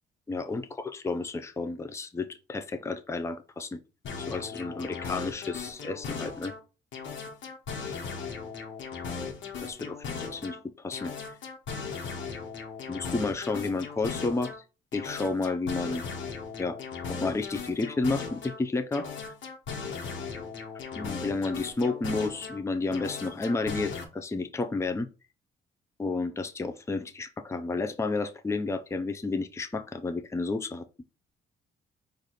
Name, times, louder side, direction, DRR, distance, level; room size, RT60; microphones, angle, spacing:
voice 1, 0.3-3.8 4.2-6.5 9.6-10.1 10.3-11.1 12.9-14.5 14.9-16.0 16.6-16.8 17.1-19.1 20.9-25.1 26.0-30.8, left 3 dB, 15° left, 8 dB, 0.5 m, -31 dB
sound 1, 4.0-6.6 6.9-10.6 10.9-14.6 14.9-18.6 18.9-22.6 22.9-24.0, left 5 dB, 75° left, 1.3 m, -37 dB
4.8 x 2.6 x 4.1 m, 0.32 s
cardioid pair, 90°, 20 cm